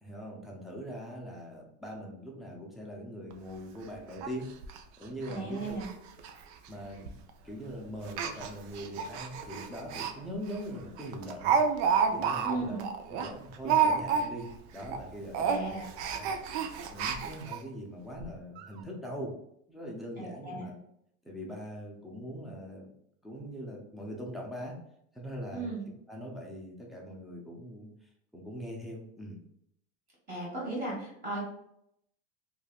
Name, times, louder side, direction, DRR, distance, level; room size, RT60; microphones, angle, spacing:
voice 1, 0.0-4.5 5.0-5.8 6.7-7.1 7.4-11.6 12.1-12.8 13.1-15.8 16.1-16.3 16.9-19.4 19.7-20.8 21.2-22.9 23.2-24.8 25.1-25.8 26.1-27.9 28.3-29.4, equal, ahead, -2 dB, 0.5 m, -41 dB
Speech, 3.3-3.4 3.7-3.8 4.2-4.3 4.6-4.8 5.2-5.4 5.6-5.9 6.2-6.3 7.1-7.3 8.0-10.1 10.5-10.6 11.0-14.5 14.8-15.0 15.3-17.6 18.2-18.3 18.6-18.7, right 6 dB, 70° right, 0.5 m, -30 dB
voice 2, 5.3-5.9 12.4-12.9 15.4-15.9 20.2-20.6 25.5-25.8 30.3-31.4, right 3 dB, 25° right, -4 dB, 1.3 m, -36 dB
3.2 x 2.4 x 2.3 m, 0.75 s
supercardioid pair, 130°, 34 cm